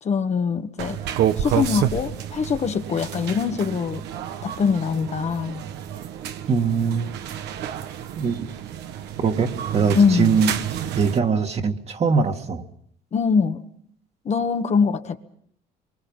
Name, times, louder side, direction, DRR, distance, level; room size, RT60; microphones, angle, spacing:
voice 1, 0.0-1.0 1.4-4.0 4.4-5.6 9.9-10.4 13.1-13.6 14.2-15.2, left 5 dB, 40° left, 7 dB, 1.5 m, -23 dB
sound 1, 0.8-11.2, right 10 dB, 80° right, 1.5 m, -29 dB
voice 2, 6.5-7.1 8.2-8.5 9.2-10.5 11.0-12.6, right 5 dB, 40° right, 5 dB, 2.0 m, -22 dB
26.5 x 24.0 x 5.6 m, 0.65 s
cardioid pair, 110°, 17 cm